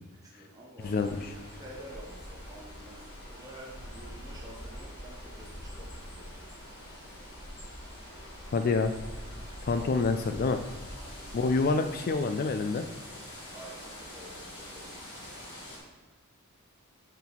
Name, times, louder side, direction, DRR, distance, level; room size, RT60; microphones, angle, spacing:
voice 1, 0.2-6.3 9.2-10.0 10.9-11.7 13.5-15.1, right 1 dB, 15° right, -4 dB, 1.5 m, -50 dB
sound 1, 0.8-15.8, equal, 75° left, 2.0 m, -44 dB
voice 2, 0.8-1.3 8.5-8.9 9.6-10.6 11.3-12.8, left 4 dB, 45° left, 8 dB, 0.3 m, -27 dB
6.0 x 4.6 x 5.3 m, 1.2 s
head